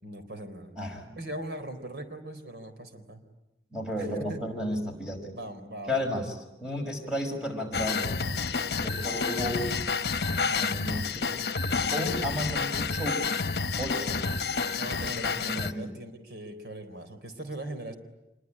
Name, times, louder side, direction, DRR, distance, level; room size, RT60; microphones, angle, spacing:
voice 1, 0.0-0.7 1.1-3.2 3.9-4.4 5.3-6.2 10.3-10.7 14.7-17.9, right 1 dB, 75° right, 8 dB, 3.9 m, -40 dB
voice 2, 0.8-1.2 3.7-5.3 5.9-8.1 8.7-9.7 10.5-11.4 11.9-13.3 13.8-14.2 15.0-15.9, left 1 dB, 5° right, 2 dB, 5.6 m, -33 dB
sound 1, 7.7-15.7, left 4 dB, 65° left, 1.1 m, -29 dB
26.5 x 22.0 x 9.9 m, 0.98 s
head